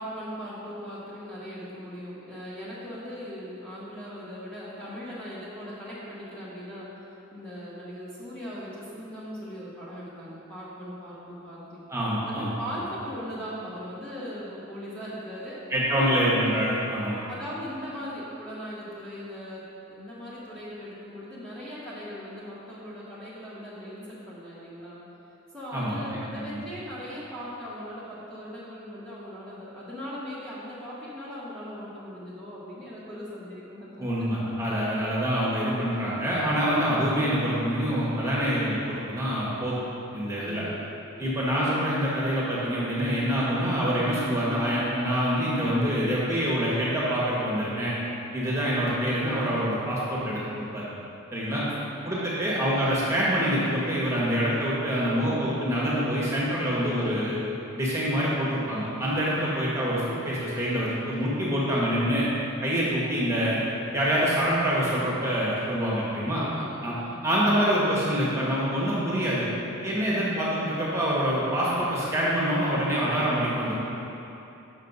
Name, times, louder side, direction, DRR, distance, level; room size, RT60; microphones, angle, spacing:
voice 1, 0.0-6.9 7.3-11.8 12.2-15.6 15.9-16.1 17.3-25.0 25.5-34.1 40.3-40.7 41.1-41.2 51.5-51.7 52.2-52.3 66.3-66.7 66.9-67.3 69.9-70.3, equal, 5° left, -10 dB, 1.4 m, -39 dB
voice 2, 11.9-12.5 15.7-17.2 25.7-26.6 34.0-39.8 40.1-40.6 41.2-47.9 48.3-50.8 51.3-51.6 52.0-57.4 57.7-62.3 62.6-63.6 63.9-66.4 66.8-66.9 67.2-69.5 69.8-73.7, equal, 15° right, -7 dB, 1.5 m, -26 dB
6.5 x 5.9 x 5.4 m, 2.8 s
head